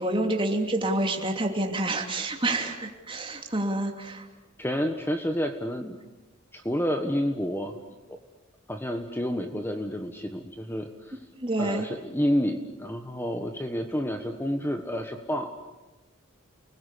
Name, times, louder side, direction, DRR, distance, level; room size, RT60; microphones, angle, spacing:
voice 1, 0.0-4.2 11.4-11.9, right 1 dB, 25° right, 3 dB, 2.9 m, -28 dB
voice 2, 4.6-6.0 6.5-7.8 8.7-11.2 11.6-15.7, equal, 10° left, 5 dB, 1.4 m, -29 dB
30.0 x 20.5 x 8.4 m, 1.1 s
head